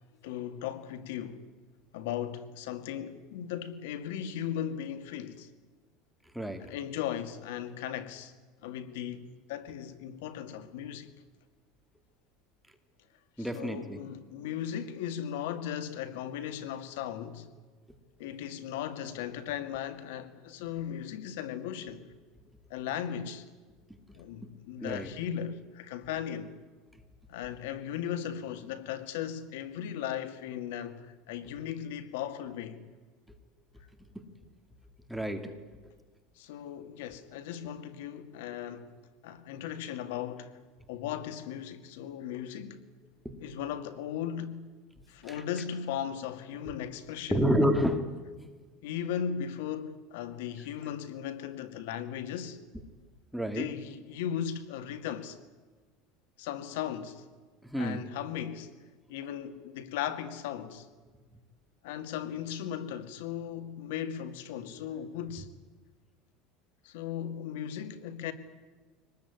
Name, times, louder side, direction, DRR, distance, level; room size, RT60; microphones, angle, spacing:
voice 1, 0.2-1.4 1.9-5.5 6.6-8.3 8.6-11.1 13.4-17.5 18.2-22.1 22.7-23.4 24.1-26.5 27.3-32.8 36.4-39.0 39.2-40.6 40.9-42.8 43.4-44.7 45.1-47.4 48.8-52.6 53.5-55.4 56.4-57.2 57.8-58.7 59.1-60.9 61.8-65.5 66.8-68.3, left 9 dB, 90° left, 2.2 m, -37 dB
voice 2, 6.3-6.7 13.4-14.0 24.1-24.2 24.8-25.1 35.1-35.5 43.2-43.5 45.2-45.4 47.3-48.1 53.3-53.7 57.6-58.0, equal, ahead, 2.2 m, -29 dB
24.5 x 19.5 x 9.6 m
cardioid pair, 155°, 0 cm